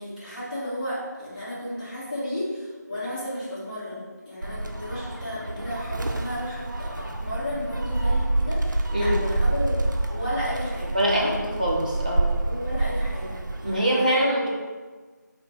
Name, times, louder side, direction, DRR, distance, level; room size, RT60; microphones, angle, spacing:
voice 1, 0.0-11.4 12.4-14.5, equal, 25° left, -11 dB, 1.2 m, -33 dB
Gull seagull, 4.4-13.8, right 2 dB, 80° right, 0.5 m, -27 dB
voice 2, 10.9-12.3 13.6-14.5, equal, 25° right, -4 dB, 0.6 m, -23 dB
4.6 x 2.1 x 4.6 m, 1.4 s
figure-of-eight pair, 175°, 10 cm